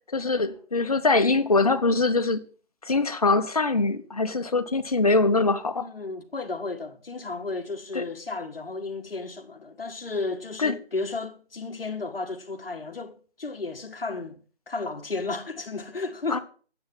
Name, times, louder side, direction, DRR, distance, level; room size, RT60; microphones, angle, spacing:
voice 1, 0.1-2.4 2.8-5.9 7.9-8.0 10.6-10.7 16.3-16.4, left 3 dB, 35° left, 0.8 m, -23 dB
voice 2, 5.7-14.4 14.7-16.4, left 3 dB, 60° left, 1.5 m, -33 dB
9.4 x 8.1 x 5.8 m
figure-of-eight pair, 160°, 33 cm